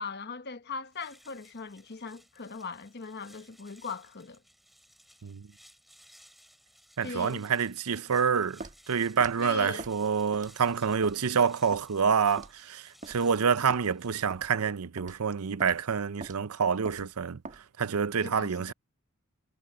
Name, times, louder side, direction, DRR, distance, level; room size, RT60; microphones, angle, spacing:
voice 1, 0.0-4.4 7.0-7.4 9.4-9.9 18.2-18.7, left 4 dB, 50° left, 1.0 m, -39 dB
sound 1, 0.8-14.5, equal, ahead, 7.9 m, -59 dB
voice 2, 7.0-17.4 17.8-18.7, right 6 dB, 80° right, 0.6 m, -27 dB
Walk footsteps, 8.6-8.8 9.2-9.4 9.8-10.0 10.3-10.6 11.0-11.2 11.7-11.9 12.4-12.6 13.0-13.2 13.7-13.8 14.3-14.5 15.0-15.2 15.6-15.8 16.2-16.4 16.9-17.1 17.4-17.6, right 3 dB, 35° right, 1.5 m, -43 dB
head